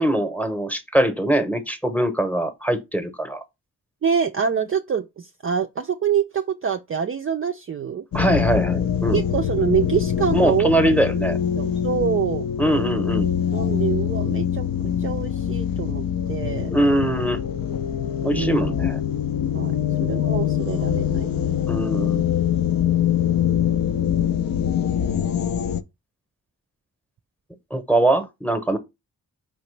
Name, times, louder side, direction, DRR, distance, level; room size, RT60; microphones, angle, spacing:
voice 1, 0.0-3.4 8.1-9.2 10.3-11.4 12.6-13.3 16.7-17.4 18.2-19.0 21.7-22.2 27.7-28.8, right 1 dB, 5° left, 0.8 m, -22 dB
voice 2, 4.0-8.0 9.1-10.7 11.5-12.5 13.5-14.6 15.0-16.7 18.3-18.7 19.5-19.7 20.0-21.5, right 7 dB, 35° right, 0.4 m, -25 dB
sound 1, 8.1-25.8, left 9 dB, 60° left, 0.5 m, -24 dB
5.0 x 2.9 x 3.2 m
cardioid pair, 65°, 37 cm